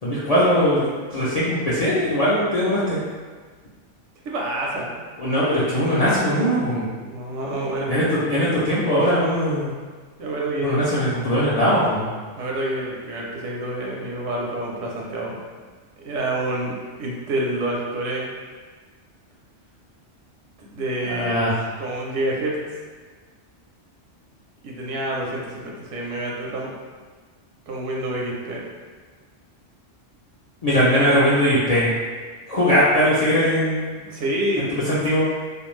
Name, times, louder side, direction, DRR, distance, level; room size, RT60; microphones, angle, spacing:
voice 1, 0.0-3.0 5.2-6.9 7.9-9.7 10.6-12.1 21.1-21.6 30.6-31.9 32.5-34.0 34.9-35.3, equal, 55° left, -10 dB, 0.4 m, -20 dB
voice 2, 4.2-5.0 7.0-7.9 9.0-9.2 10.2-10.8 12.4-15.4 16.0-18.3 20.7-21.3 21.8-22.6 24.6-26.7 27.7-28.6 34.1-34.8, right 1 dB, 80° right, -3 dB, 0.9 m, -27 dB
2.5 x 2.2 x 3.0 m, 1.5 s
omnidirectional pair, 1.2 m